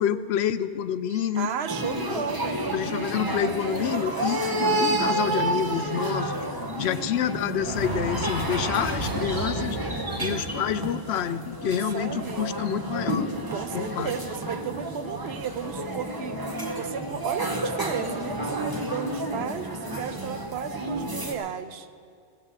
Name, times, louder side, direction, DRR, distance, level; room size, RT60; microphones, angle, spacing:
voice 1, 0.0-1.5 2.1-2.2 2.7-6.3 6.8-13.3 13.7-14.1, left 9 dB, 90° left, 13 dB, 0.9 m, -28 dB
sound 1, 1.1-2.0 3.9-4.4 4.7-5.1 6.0-6.7 7.0-7.2 7.5-10.5, right 1 dB, 45° right, 2.7 m, -33 dB
voice 2, 1.4-2.6 6.8-7.1 11.6-12.5 13.5-16.4 16.7-21.9, right 7 dB, 80° right, 11 dB, 1.0 m, -34 dB
sound 2, 1.7-21.3, right 1 dB, 20° right, 1.0 m, -30 dB
15.5 x 8.0 x 8.2 m, 2.2 s
omnidirectional pair, 1.1 m